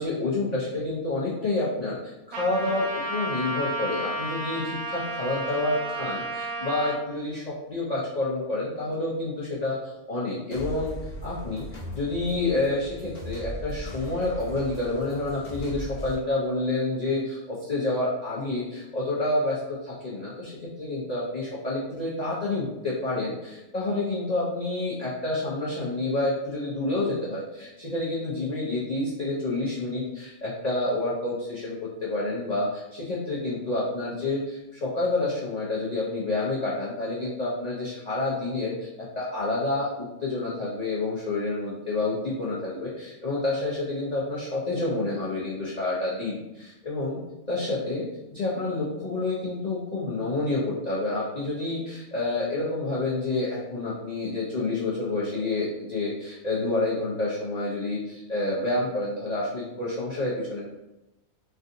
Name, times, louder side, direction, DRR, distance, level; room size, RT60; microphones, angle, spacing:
voice 1, 0.0-10.9 11.2-38.9 39.2-47.2 47.5-60.6, left 2 dB, 80° left, -7 dB, 0.3 m, -29 dB
Trumpet, 2.3-7.0, right 2 dB, 75° right, 1.0 m, -32 dB
sound 1, 10.5-16.1, right 1 dB, 35° left, 0.6 m, -38 dB
3.3 x 2.5 x 2.5 m, 0.98 s
omnidirectional pair, 1.5 m